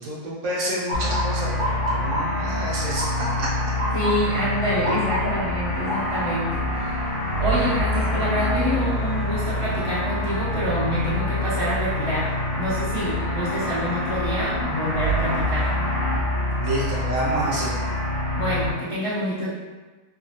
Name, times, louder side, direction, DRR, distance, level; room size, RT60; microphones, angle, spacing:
voice 1, 0.0-3.5 4.9-5.0 16.6-17.7, right 1 dB, 65° right, -5 dB, 1.1 m, -28 dB
sound 1, 0.9-18.7, left 1 dB, 60° left, 1.1 m, -26 dB
Motor vehicle (road) / Siren, 0.9-12.8 13.2-13.7 14.4-14.8 16.6-16.9 17.4-17.5 17.9-18.6, equal, 40° right, 0.8 m, -33 dB
voice 2, 3.9-7.1 7.4-15.7 18.3-19.5, equal, 35° left, -11 dB, 0.5 m, -27 dB
2.8 x 2.4 x 2.7 m, 1.3 s
omnidirectional pair, 1.7 m